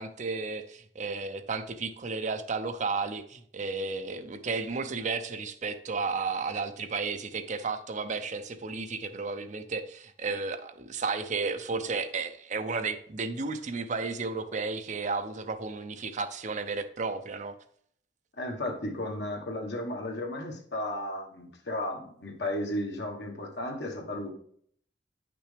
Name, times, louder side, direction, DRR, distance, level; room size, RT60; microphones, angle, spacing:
voice 1, 0.0-17.6, right 4 dB, 45° right, 0.6 m, -33 dB
voice 2, 18.4-24.3, left 1 dB, 70° left, 1.4 m, -34 dB
9.4 x 5.9 x 3.4 m
head